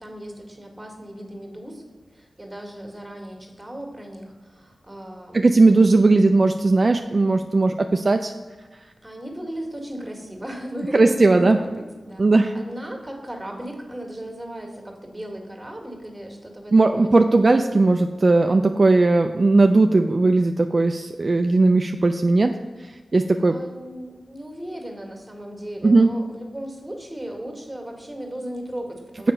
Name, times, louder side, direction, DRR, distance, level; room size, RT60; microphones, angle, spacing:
voice 1, 0.0-1.8 2.1-6.1 9.0-12.3 12.5-17.1 23.2-29.3, right 1 dB, 15° right, 1 dB, 1.8 m, -36 dB
voice 2, 5.3-8.3 10.9-11.6 12.2-12.5 16.7-22.5 23.1-23.6 25.8-26.1, right 3 dB, 45° right, 6 dB, 0.4 m, -17 dB
6.9 x 5.0 x 5.5 m, 1.3 s
cardioid pair, 55°, 0 cm